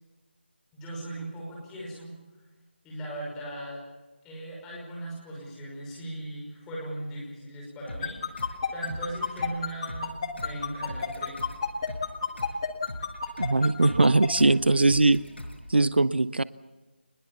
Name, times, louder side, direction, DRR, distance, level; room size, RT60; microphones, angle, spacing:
voice 1, 0.7-2.1 2.8-3.8 4.2-11.4, right 1 dB, 5° left, -4 dB, 5.7 m, -38 dB
sound 1, 7.9-15.9, left 1 dB, 70° left, 5.4 m, -42 dB
sound 2, 8.0-14.3, left 6 dB, 25° left, 1.9 m, -29 dB
voice 2, 13.4-15.2 15.7-16.4, right 2 dB, 65° right, 18 dB, 0.7 m, -21 dB
25.0 x 21.0 x 7.3 m, 1.2 s
figure-of-eight pair, 160°, 6 cm